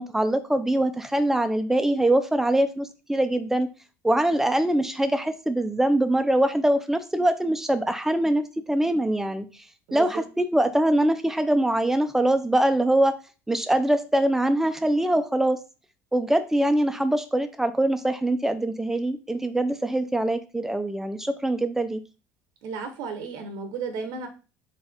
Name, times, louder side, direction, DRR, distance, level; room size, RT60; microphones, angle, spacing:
voice 1, 0.0-3.7 4.0-9.5 9.9-13.1 13.5-15.6 16.1-22.0, right 1 dB, 5° right, 10 dB, 0.5 m, -23 dB
voice 2, 9.9-10.2 22.6-24.3, right 5 dB, 75° right, 5 dB, 0.8 m, -33 dB
4.0 x 3.6 x 3.4 m, 0.32 s
supercardioid pair, 105°, 7 cm